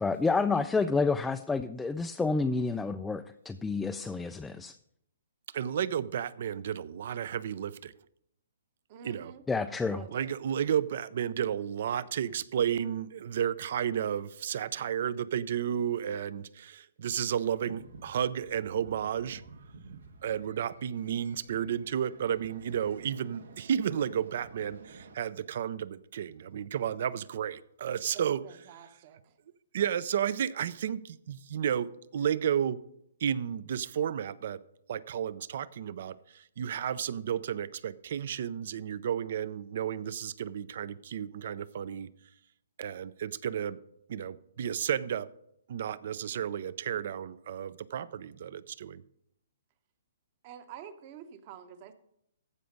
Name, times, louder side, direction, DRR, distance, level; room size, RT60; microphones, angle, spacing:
voice 1, 0.0-4.8 9.5-10.0, left 4 dB, 5° left, 7 dB, 0.3 m, -29 dB
voice 2, 5.5-7.9 9.0-9.3 10.1-19.4 20.2-28.4 29.7-32.8 33.2-34.6 34.9-42.1 42.8-43.8 44.1-45.3 45.7-49.0, right 9 dB, 55° right, 19 dB, 0.5 m, -32 dB
voice 3, 8.9-9.5 9.9-10.3 28.1-29.4 50.4-51.9, right 8 dB, 35° right, 10 dB, 1.0 m, -48 dB
sound 1, 17.6-25.1, right 4 dB, 85° right, 1.5 m, -52 dB
14.5 x 5.2 x 5.2 m, 0.76 s
hypercardioid pair, 150°, 0 cm